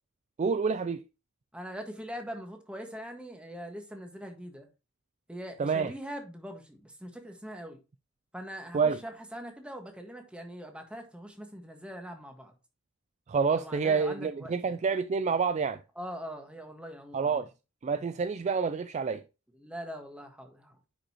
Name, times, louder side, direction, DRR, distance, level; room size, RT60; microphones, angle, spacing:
voice 1, 0.4-1.0 5.6-5.9 8.7-9.0 13.3-15.8 17.1-17.5 17.8-19.2, right 5 dB, 35° right, 0.3 m, -28 dB
voice 2, 1.5-4.7 5.3-7.8 8.3-12.5 13.5-14.8 15.9-17.4 19.5-20.8, equal, 5° right, 1.5 m, -42 dB
10.0 x 5.3 x 2.9 m
head